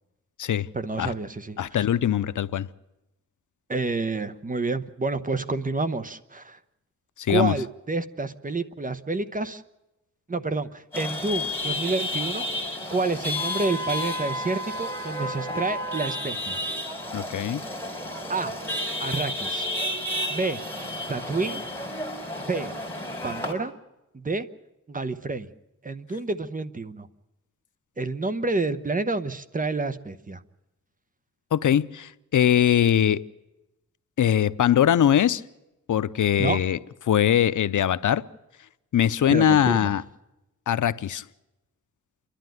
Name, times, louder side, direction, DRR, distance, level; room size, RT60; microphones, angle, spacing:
voice 1, 0.7-1.8 3.7-6.6 7.3-9.6 10.3-12.4 12.9-16.6 18.3-18.6 19.0-19.7 20.3-20.6 21.1-21.6 22.5-22.7 23.2-23.7 24.1-24.5 24.9-25.5 25.8-27.1 28.0-30.4 36.4-36.6 39.3-39.9, right 3 dB, 25° right, 0.9 m, -29 dB
voice 2, 1.6-2.7 7.2-7.5 17.1-17.6 31.5-33.2 34.2-35.4 35.9-36.8 37.1-38.2 38.9-40.0 40.7-41.2, left 10 dB, 85° left, 0.6 m, -21 dB
Chatter / Vehicle horn car horn honking / Traffic noise roadway noise, 10.9-23.5, left 1 dB, 10° left, 4.2 m, -31 dB
28.5 x 11.5 x 9.2 m
wide cardioid pair, 125°, 30 cm